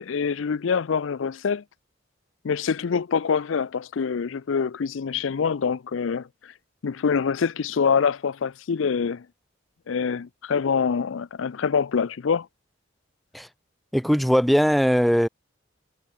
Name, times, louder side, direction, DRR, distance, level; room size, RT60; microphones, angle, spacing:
voice 1, 0.0-1.6 2.4-6.3 6.8-9.2 9.9-12.5, left 6 dB, 80° left, 0.5 m, -25 dB
voice 2, 13.9-15.3, equal, ahead, 0.4 m, -20 dB
head